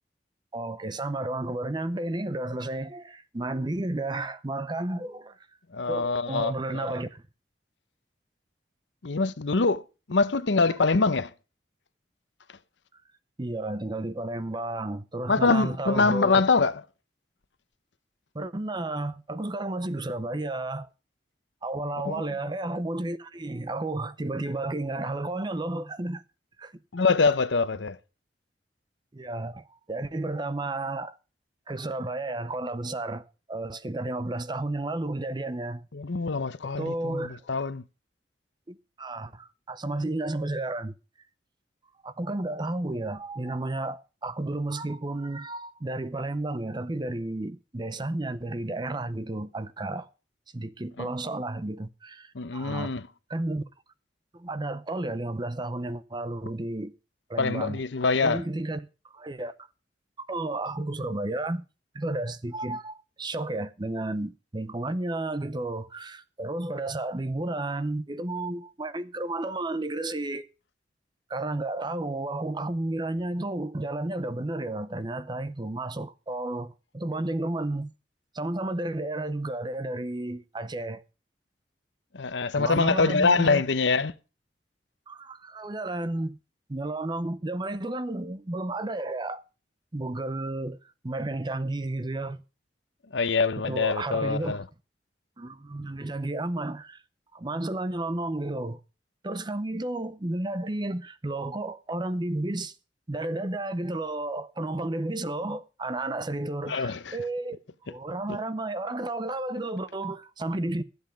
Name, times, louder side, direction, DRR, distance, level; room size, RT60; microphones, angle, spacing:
voice 1, 0.5-5.4 5.9-7.2 13.4-16.4 18.3-20.9 21.6-26.2 26.6-26.7 29.1-31.2 31.7-35.9 36.8-37.4 38.7-40.9 42.0-50.1 50.5-52.9 53.3-53.6 54.3-56.9 57.3-57.8 58.2-59.5 60.2-61.6 61.9-70.5 71.3-77.9 78.3-81.0 82.6-83.6 85.1-86.4 86.7-89.4 89.9-90.8 91.0-92.4 93.6-94.6 95.4-97.0 97.3-98.8 99.2-102.7 103.1-107.6 107.9-110.8, right 2 dB, 25° right, 0.7 m, -32 dB
voice 2, 5.7-7.0 9.0-11.3 15.3-16.8 22.0-22.3 26.9-28.0 35.9-37.8 51.0-51.1 52.3-53.1 57.4-58.4 82.1-84.1 93.1-94.6 106.7-107.2 108.3-108.4, left 4 dB, 85° left, 0.8 m, -24 dB
14.0 x 8.0 x 5.1 m
head